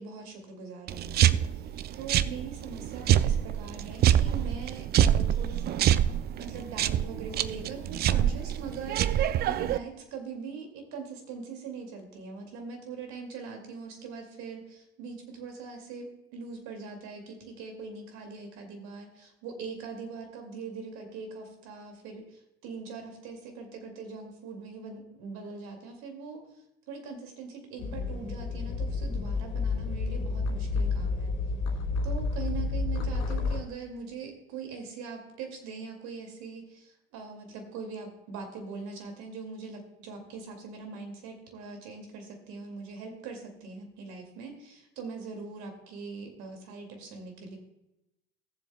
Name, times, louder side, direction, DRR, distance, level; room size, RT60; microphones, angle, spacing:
voice 1, 0.0-1.4 1.9-5.9 6.4-26.4 26.9-31.3 32.0-47.6, right 5 dB, 55° right, 4 dB, 2.4 m, -42 dB
sound 1, 0.9-9.8, right 11 dB, 30° right, 0.4 m, -26 dB
sound 2, 27.8-33.6, left 4 dB, 50° left, 2.5 m, -30 dB
19.0 x 7.3 x 2.3 m, 0.91 s
hypercardioid pair, 75°, 33 cm